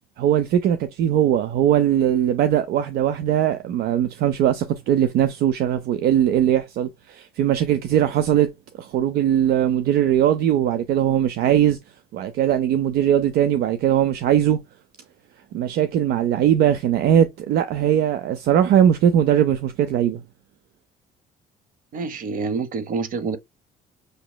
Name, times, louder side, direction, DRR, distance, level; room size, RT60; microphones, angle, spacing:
voice 1, 0.2-11.8 12.1-14.6 15.5-20.2, right 10 dB, 70° right, 0.5 m, -20 dB
voice 2, 21.9-23.4, right 4 dB, 55° right, 0.9 m, -27 dB
6.5 x 3.0 x 2.2 m
cardioid pair, 110°, 17 cm